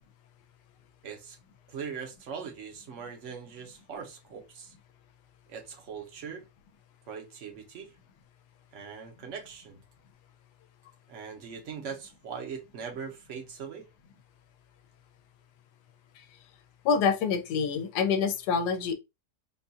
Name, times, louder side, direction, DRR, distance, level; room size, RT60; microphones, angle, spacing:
voice 1, 1.0-1.4 1.7-4.7 5.5-6.4 7.1-7.9 8.7-9.8 11.1-13.9, right 6 dB, 55° right, 1.0 m, -41 dB
voice 2, 16.8-18.9, left 6 dB, 90° left, 1.2 m, -26 dB
3.8 x 2.4 x 2.7 m
omnidirectional pair, 1.7 m